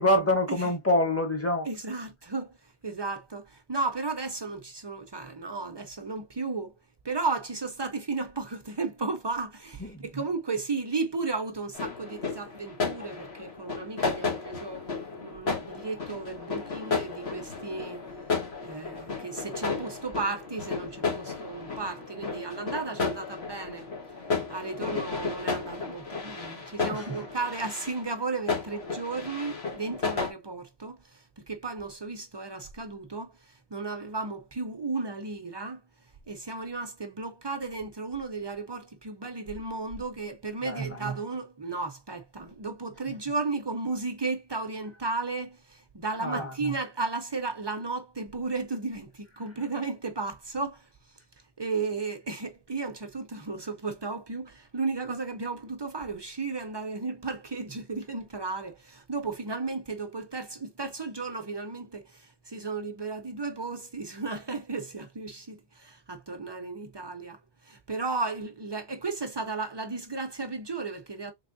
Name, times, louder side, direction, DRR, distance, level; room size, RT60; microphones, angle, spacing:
voice 1, 0.0-1.7 9.8-10.1 26.9-27.1 40.6-41.0 46.2-46.5, left 1 dB, 15° left, 0.9 m, -26 dB
voice 2, 1.7-2.5 2.8-6.7 7.0-14.8 15.2-18.0 18.6-23.9 24.5-35.8 36.3-50.9 51.6-71.3, right 3 dB, 40° right, 0.3 m, -34 dB
sound 1, 11.7-30.3, left 4 dB, 80° left, 1.7 m, -33 dB
3.4 x 3.3 x 2.5 m
omnidirectional pair, 1.1 m